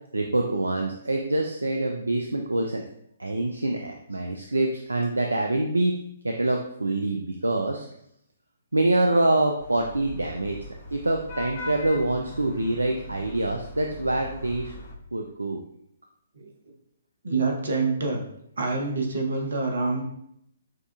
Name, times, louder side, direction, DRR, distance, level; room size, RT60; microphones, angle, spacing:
voice 1, 0.1-2.8 3.2-5.9 6.2-7.9 8.7-10.6 10.9-14.7 15.1-15.6, right 2 dB, 75° right, 2 dB, 0.3 m, -25 dB
Vehicle horn car horn honking / Traffic noise roadway noise, 9.6-14.9, left 2 dB, 40° left, 0.6 m, -40 dB
voice 2, 17.2-18.2 18.6-20.0, right 3 dB, 60° right, 2 dB, 0.9 m, -26 dB
6.1 x 2.4 x 2.3 m, 0.73 s
figure-of-eight pair, 125°, 0 cm